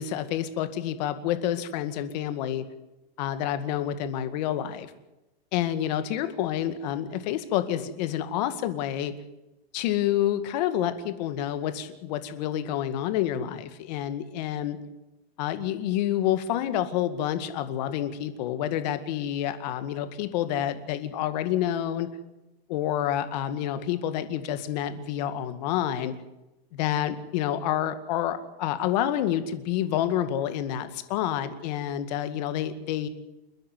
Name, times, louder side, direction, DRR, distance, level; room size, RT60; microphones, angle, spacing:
voice 1, 0.0-2.6 3.2-4.9 5.5-9.1 9.7-14.8 15.4-22.1 22.7-26.1 26.7-33.1, left 11 dB, 40° left, 10 dB, 2.1 m, -28 dB
29.5 x 10.5 x 9.5 m, 0.98 s
supercardioid pair, 165°, 31 cm